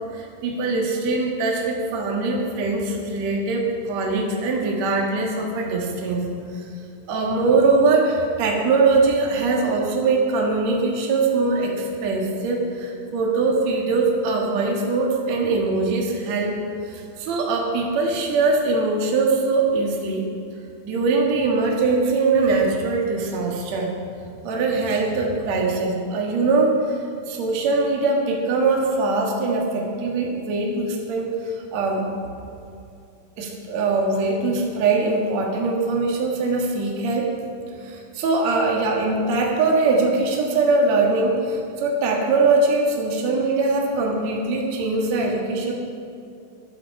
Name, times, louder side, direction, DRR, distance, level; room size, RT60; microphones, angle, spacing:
voice 1, 0.1-6.3 6.5-6.6 7.1-16.6 16.8-20.3 20.9-24.0 24.4-27.0 27.3-32.1 33.4-37.3 37.8-45.7, right 3 dB, 55° right, -1 dB, 2.7 m, -22 dB
14.5 x 12.0 x 4.9 m, 2.5 s
omnidirectional pair, 4.2 m